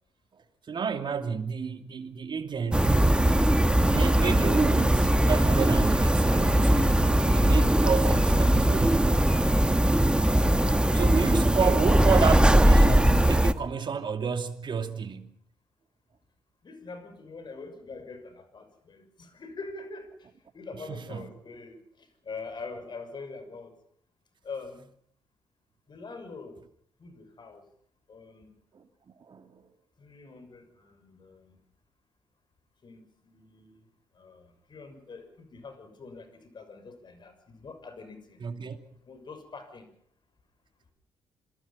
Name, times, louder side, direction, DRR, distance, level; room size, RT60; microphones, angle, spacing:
voice 1, 0.7-3.0 3.9-7.0 7.2-9.0 10.9-15.3 20.9-21.3 28.7-28.8 29.3-29.6 38.4-38.8, right 6 dB, 50° right, 2.7 m, -30 dB
sound 1, 2.7-13.5, right 1 dB, 10° right, 1.6 m, -21 dB
voice 2, 16.6-20.3 20.5-23.7 24.4-24.9 25.9-26.6 27.0-27.7 28.1-28.5 30.0-31.6 32.8-33.8 34.1-38.4 39.1-39.9, left 4 dB, 45° left, 6.3 m, -44 dB
27.5 x 22.0 x 5.7 m
hypercardioid pair, 45°, 10 cm